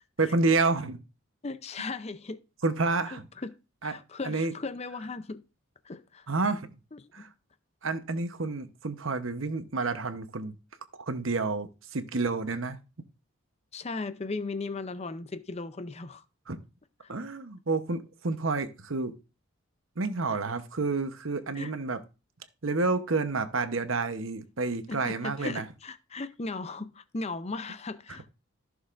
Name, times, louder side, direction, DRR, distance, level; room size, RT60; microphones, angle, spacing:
voice 1, 0.2-1.0 2.6-3.2 3.8-3.9 4.2-4.6 6.3-6.7 7.1-7.3 7.8-10.5 11.0-12.8 16.5-16.6 17.1-19.1 20.0-22.0 22.6-25.6, right 3 dB, 65° right, 0.9 m, -29 dB
voice 2, 1.4-2.4 3.1-3.5 3.8-5.4 5.8-6.3 6.9-7.3 13.7-16.2 17.0-17.1 20.3-20.4 21.5-21.7 24.9-28.3, left 3 dB, 30° left, 0.5 m, -37 dB
15.0 x 6.4 x 2.5 m
head